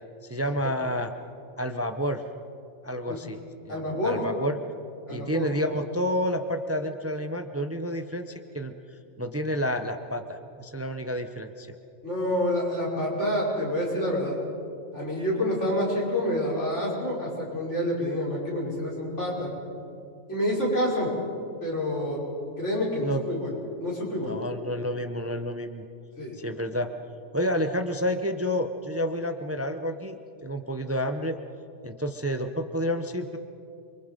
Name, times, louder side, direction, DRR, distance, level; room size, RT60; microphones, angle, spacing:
voice 1, 0.2-1.1 1.6-2.2 2.8-3.4 3.6-4.6 5.1-8.7 9.2-11.8 23.0-23.2 24.2-25.8 26.3-26.9 27.3-31.4 31.8-33.4, equal, 15° right, 7 dB, 0.7 m, -29 dB
voice 2, 3.7-4.2 5.1-5.5 12.0-14.4 14.9-19.5 20.3-21.1 21.6-22.2 22.6-23.5 23.8-24.3 26.2-26.3, left 1 dB, 75° left, -5 dB, 5.7 m, -28 dB
28.0 x 23.5 x 5.3 m, 2.5 s
omnidirectional pair, 1.2 m